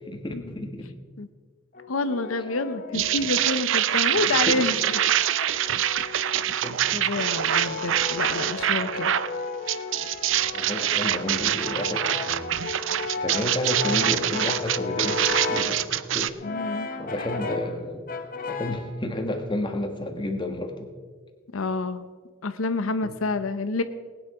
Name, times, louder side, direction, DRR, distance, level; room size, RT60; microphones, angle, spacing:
voice 1, 0.1-0.9 4.1-4.6 6.6-6.8 10.5-12.6 13.2-15.8 16.1-16.4 17.0-18.1 18.5-20.7 23.0-23.1, left 1 dB, 20° left, 4 dB, 1.4 m, -31 dB
Brass instrument, 1.7-3.7 4.4-6.5 7.2-15.8 16.4-17.8 18.1-18.9, left 3 dB, 40° left, 1.0 m, -34 dB
voice 2, 1.9-4.8 6.9-9.1 16.4-16.9 21.5-22.1 22.4-23.8, left 3 dB, 85° left, 10 dB, 0.7 m, -28 dB
sound 1, 2.9-9.3 9.7-16.3, right 11 dB, 65° right, 0.5 m, -25 dB
19.5 x 9.2 x 4.9 m, 1.5 s
head